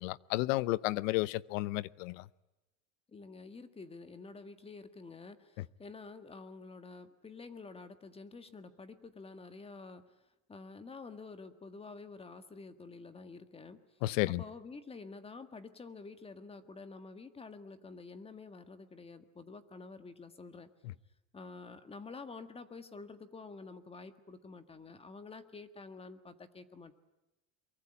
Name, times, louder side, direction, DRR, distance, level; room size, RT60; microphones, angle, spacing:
voice 1, 0.0-2.2 14.0-14.4, left 19 dB, 80° left, 0.9 m, -32 dB
voice 2, 3.1-10.1 10.5-13.8 14.4-20.7 21.3-26.9, left 4 dB, 15° left, 1.6 m, -49 dB
24.0 x 23.0 x 9.9 m
cardioid pair, 145°, 38 cm